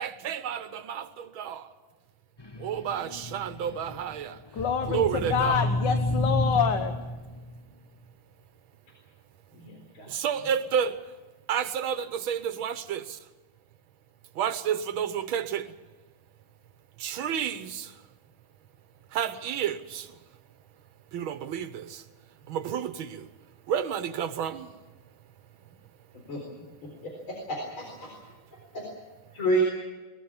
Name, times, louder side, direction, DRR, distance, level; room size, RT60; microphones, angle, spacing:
voice 1, 0.0-1.7 2.6-4.4 4.9-5.7 10.1-11.0 11.5-13.2 14.4-15.7 17.0-17.9 19.1-20.1 21.1-22.0 22.5-23.3 23.7-24.7, right 8 dB, 85° right, 1.8 m, -30 dB
sound 1, 2.4-7.6, left 1 dB, 20° left, 0.6 m, -31 dB
voice 2, 4.5-6.9, left 7 dB, 65° left, 1.8 m, -27 dB
voice 3, 9.6-10.1 26.3-26.4 27.5-28.1 28.7-28.8 29.3-29.6, right 1 dB, 90° left, 4.9 m, -29 dB
22.5 x 21.0 x 7.2 m
omnidirectional pair, 2.2 m